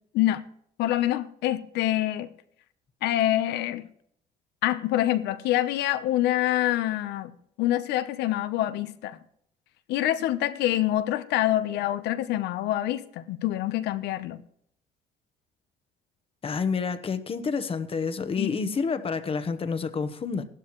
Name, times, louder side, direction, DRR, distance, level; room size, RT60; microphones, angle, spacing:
voice 1, 0.8-2.3 3.0-3.9 4.6-9.2 9.9-14.4 18.4-18.6, left 14 dB, 85° left, 0.9 m, -26 dB
voice 2, 16.4-20.4, left 5 dB, 35° left, 1.1 m, -29 dB
16.0 x 12.5 x 3.2 m
cardioid pair, 110°, 17 cm